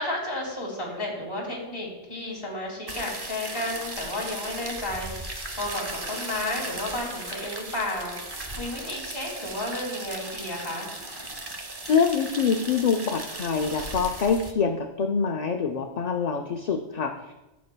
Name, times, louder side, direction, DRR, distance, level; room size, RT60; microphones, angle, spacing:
voice 1, 0.0-10.9, left 1 dB, 30° left, -4 dB, 2.0 m, -32 dB
sound 1, 2.9-14.5, right 2 dB, 25° right, 0.7 m, -37 dB
voice 2, 11.9-17.3, left 6 dB, 50° left, 4 dB, 0.5 m, -25 dB
14.0 x 6.4 x 2.2 m, 0.99 s
omnidirectional pair, 1.1 m